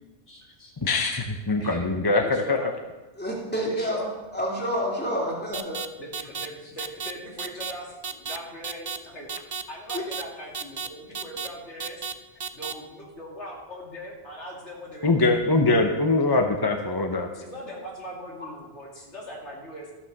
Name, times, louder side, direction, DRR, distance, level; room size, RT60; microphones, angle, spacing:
voice 1, 0.3-0.7 1.6-2.7 3.6-4.1 6.0-9.3 9.7-12.0 12.5-15.5 17.4-19.9, equal, 80° left, -2 dB, 2.9 m, -40 dB
voice 2, 0.8-2.6 15.0-17.3, left 2 dB, 25° left, 4 dB, 0.7 m, -22 dB
voice 3, 3.2-5.8 9.9-10.0 18.4-18.5, equal, 10° left, -3 dB, 2.6 m, -29 dB
sound 1, 5.5-5.9 6.1-6.5 6.8-7.1 7.4-7.7 8.0-8.4 8.6-9.0 9.3-9.6 9.9-10.2 10.5-10.9 11.1-11.5 11.8-12.1 12.4-12.7, right 5 dB, 35° right, 0.4 m, -32 dB
13.5 x 6.3 x 6.5 m, 1.1 s
omnidirectional pair, 1.2 m